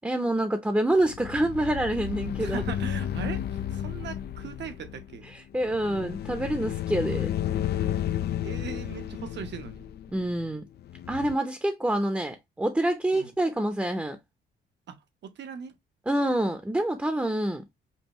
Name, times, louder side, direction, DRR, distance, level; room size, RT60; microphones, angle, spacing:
voice 1, 0.0-2.6 5.3-7.3 10.1-10.6 11.1-14.2 16.1-17.6, right 1 dB, 10° right, 0.7 m, -27 dB
sound 1, 1.0-11.4, left 11 dB, 55° left, 0.4 m, -32 dB
voice 2, 2.4-5.3 8.4-9.9 13.1-13.3 14.9-15.8, right 7 dB, 60° right, 1.0 m, -39 dB
5.6 x 2.3 x 2.9 m
cardioid pair, 90°, 20 cm